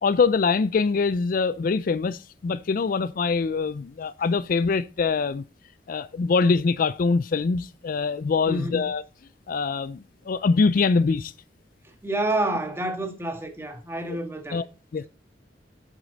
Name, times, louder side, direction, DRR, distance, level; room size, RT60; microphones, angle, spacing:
voice 1, 0.0-5.4 5.9-9.0 9.5-11.3 14.5-14.6 14.9-15.1, left 4 dB, 50° left, 0.4 m, -23 dB
voice 2, 8.5-9.0 12.0-14.6, right 1 dB, 15° right, 1.8 m, -28 dB
8.2 x 7.4 x 4.0 m
head